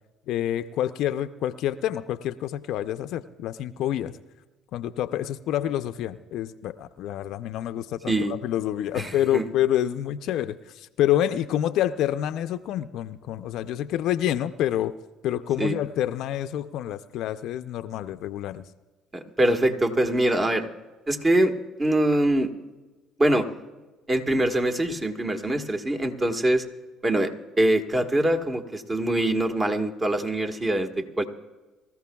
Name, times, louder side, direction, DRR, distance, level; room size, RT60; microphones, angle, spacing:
voice 1, 0.3-4.2 4.7-15.0 15.2-18.7, left 11 dB, 70° left, 9 dB, 0.5 m, -27 dB
voice 2, 8.9-9.5 15.6-15.7 19.1-20.7 21.1-21.5 21.8-22.5 23.2-23.5 24.1-26.6 27.0-27.3 27.6-31.2, right 1 dB, 25° right, 6 dB, 1.5 m, -23 dB
24.0 x 14.5 x 2.3 m, 1.2 s
supercardioid pair, 75°, 0 cm